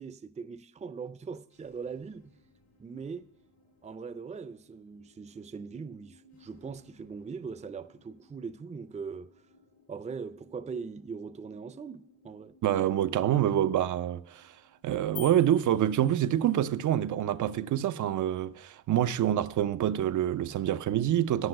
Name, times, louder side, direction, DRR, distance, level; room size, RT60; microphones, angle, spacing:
voice 1, 0.0-2.4 2.8-3.3 3.8-9.3 9.9-12.6, right 5 dB, 25° right, 0.4 m, -41 dB
sound 1, 1.5-16.9, left 1 dB, 70° left, 4.2 m, -63 dB
voice 2, 12.6-14.5 14.8-21.5, right 11 dB, 85° right, 0.5 m, -26 dB
sound 2, 15.2-16.7, left 13 dB, 55° left, 0.5 m, -46 dB
10.0 x 8.0 x 6.4 m
cardioid pair, 85°, 29 cm